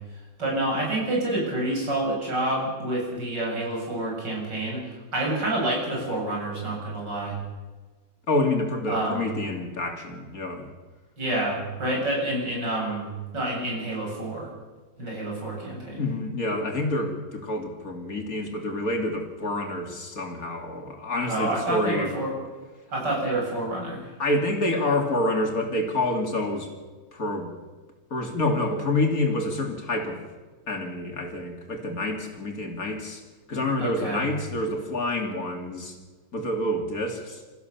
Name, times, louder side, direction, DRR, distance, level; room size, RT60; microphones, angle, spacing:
voice 1, 0.4-7.4 8.9-9.2 11.2-14.5 15.0-16.0 21.2-22.3 22.9-24.1 33.8-34.3, right 1 dB, 80° right, -2 dB, 8.3 m, -28 dB
voice 2, 8.3-10.7 16.0-22.1 24.2-26.7 27.1-27.5 28.1-30.2 30.7-33.2 33.5-36.0 36.3-37.4, left 1 dB, 55° left, 3 dB, 3.3 m, -27 dB
27.5 x 15.0 x 7.1 m, 1.3 s
omnidirectional pair, 1.9 m